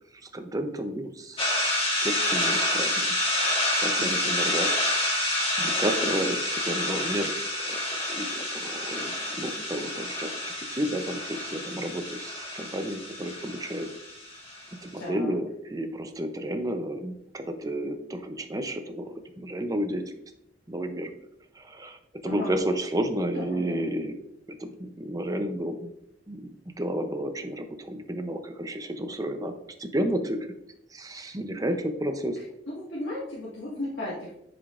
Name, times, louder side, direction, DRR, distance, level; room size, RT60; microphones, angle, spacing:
voice 1, 0.3-2.9 3.7-7.3 7.6-13.9 14.8-20.0 20.7-21.1 21.6-24.1 24.5-25.9 26.3-26.4 26.8-29.5 29.8-30.5 30.9-32.4, right 1 dB, 20° right, 7 dB, 0.6 m, -32 dB
sound 1, 1.4-14.7, left 1 dB, 30° left, 1.6 m, -28 dB
voice 2, 4.0-4.4 15.0-15.4 22.2-22.6 23.2-23.9 32.7-34.4, left 1 dB, 75° left, -8 dB, 1.8 m, -36 dB
10.5 x 5.1 x 2.5 m, 0.77 s
head